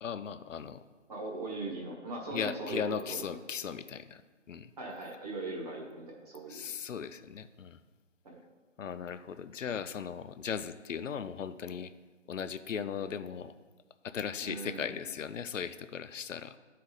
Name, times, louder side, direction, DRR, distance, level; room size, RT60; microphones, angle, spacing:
voice 1, 0.0-0.8 2.3-4.2 4.5-4.7 6.5-7.8 8.8-11.9 12.3-13.5 14.0-16.6, left 7 dB, 90° left, 12 dB, 0.6 m, -37 dB
voice 2, 1.1-2.8 3.1-3.4 4.8-6.7 8.2-8.4 14.4-15.0, right 2 dB, 30° right, -2 dB, 1.5 m, -40 dB
11.5 x 4.3 x 3.9 m, 1.3 s
hypercardioid pair, 165°, 37 cm